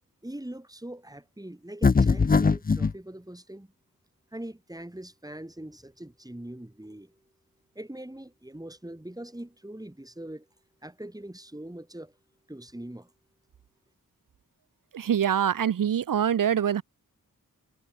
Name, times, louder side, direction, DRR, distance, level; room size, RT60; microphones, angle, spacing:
voice 1, 0.2-3.7 4.3-7.2 7.8-10.5 10.8-12.1 12.5-13.1, right 1 dB, 10° right, 4.0 m, -42 dB
sound 1, 1.8-2.9, left 4 dB, 25° left, 0.5 m, -21 dB
voice 2, 14.9-16.8, right 9 dB, 70° right, 0.7 m, -24 dB
wide cardioid pair, 70°, 34 cm